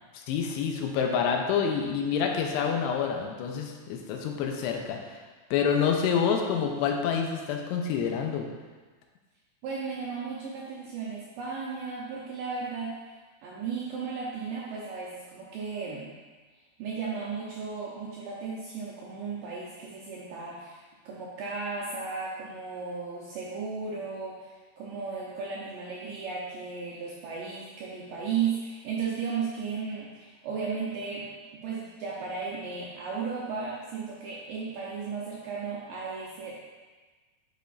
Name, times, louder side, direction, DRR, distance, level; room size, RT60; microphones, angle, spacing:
voice 1, 0.1-5.2 5.5-8.5, left 6 dB, 85° left, 2 dB, 2.7 m, -27 dB
voice 2, 9.6-13.0 13.4-16.1 16.8-24.5 24.8-36.6, right 5 dB, 75° right, -6 dB, 2.1 m, -35 dB
10.5 x 5.1 x 2.5 m, 1.4 s
omnidirectional pair, 4.9 m